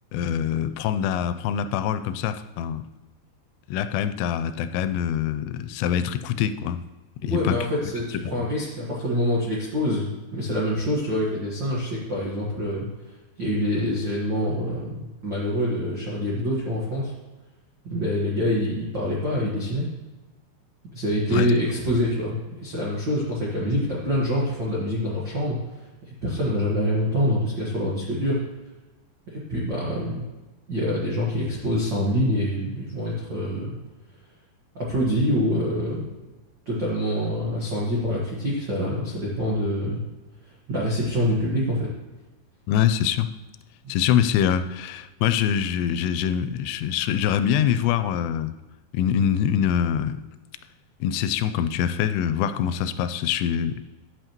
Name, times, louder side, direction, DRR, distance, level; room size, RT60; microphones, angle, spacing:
voice 1, 0.1-2.8 3.7-6.8 7.2-7.6 21.3-21.5 42.7-43.3 43.9-48.5 48.9-50.2 51.0-53.8, left 9 dB, 90° left, 11 dB, 2.7 m, -24 dB
voice 2, 7.2-17.1 17.8-19.9 20.9-25.6 26.1-28.4 29.3-30.3 30.7-33.8 34.7-36.1 36.6-40.0 40.7-41.9 43.8-43.9, equal, 65° right, -6 dB, 1.1 m, -26 dB
11.0 x 7.9 x 3.0 m, 1.1 s
omnidirectional pair, 4.8 m